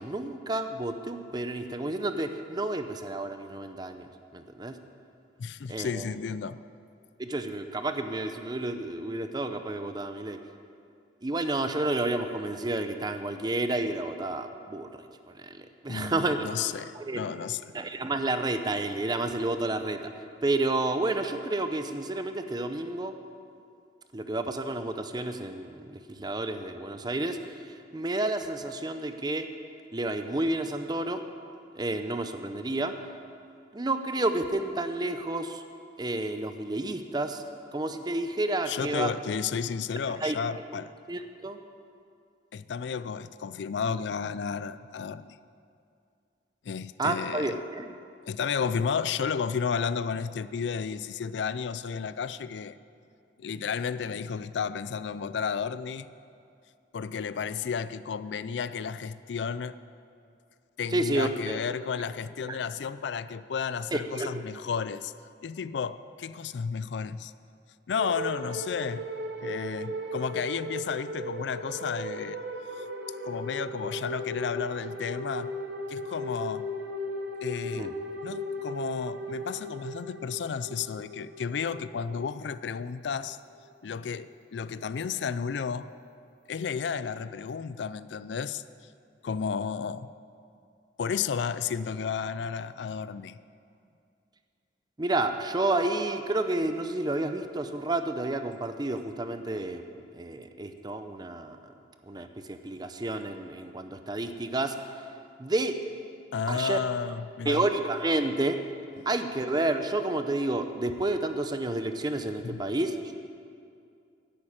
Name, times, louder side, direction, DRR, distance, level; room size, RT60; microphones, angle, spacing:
voice 1, 0.0-4.8 5.7-6.1 7.2-10.4 11.2-16.5 16.9-17.2 17.7-20.0 20.4-23.1 24.1-29.5 29.9-31.2 31.7-32.9 33.7-35.6 36.0-37.4 37.7-39.1 40.2-40.4 41.1-41.6 47.0-47.9 60.9-61.6 62.5-62.6 63.9-64.3 77.7-77.9 95.0-99.8 100.1-101.6 102.1-104.7 105.4-105.8 106.5-106.8 107.5-108.6 109.1-113.1, right 2 dB, 25° right, 8 dB, 0.7 m, -30 dB
voice 2, 5.4-6.6 15.9-17.6 38.7-40.9 42.5-45.4 46.6-47.5 48.2-52.8 53.4-56.1 56.9-59.8 60.8-65.1 65.4-67.3 67.9-69.0 69.4-72.4 72.8-72.9 73.2-75.5 75.9-76.7 77.4-77.9 78.2-83.4 83.8-85.9 86.5-88.6 89.2-90.1 91.0-93.4 106.3-107.6 109.0-109.1 112.4-112.6, left 6 dB, 75° left, 15 dB, 0.4 m, -32 dB
sound 1, 67.9-83.6, equal, 70° right, 1.2 m, -37 dB
11.0 x 8.5 x 8.8 m, 2.4 s
head